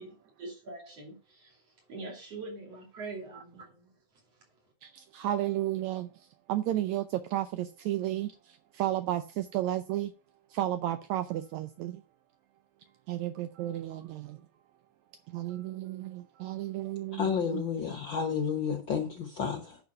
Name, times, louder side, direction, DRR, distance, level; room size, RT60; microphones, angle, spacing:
voice 1, 0.0-1.6 1.9-3.9, right 3 dB, 55° right, 3.8 m, -43 dB
voice 2, 4.8-6.1 6.5-8.3 8.7-10.1 10.5-12.0 13.1-14.4 15.3-17.6, right 13 dB, 75° right, 1.8 m, -32 dB
voice 3, 17.1-19.8, left 6 dB, 60° left, 1.3 m, -31 dB
10.5 x 4.8 x 5.4 m
omnidirectional pair, 3.5 m